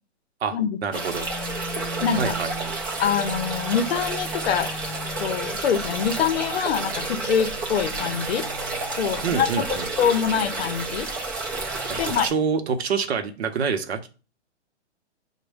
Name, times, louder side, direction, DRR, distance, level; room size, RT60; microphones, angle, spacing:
voice 1, 0.8-1.3 2.1-2.7 9.2-9.9 11.9-14.1, right 6 dB, 65° right, 7 dB, 0.8 m, -26 dB
sound 1, 0.9-12.3, right 2 dB, 20° right, 0.5 m, -30 dB
voice 2, 2.0-2.3 3.0-4.7 5.2-8.5 8.9-9.6 10.0-11.1 12.0-12.3, left 7 dB, 65° left, 11 dB, 0.7 m, -24 dB
6.2 x 2.2 x 3.4 m, 0.34 s
hypercardioid pair, 170°, 34 cm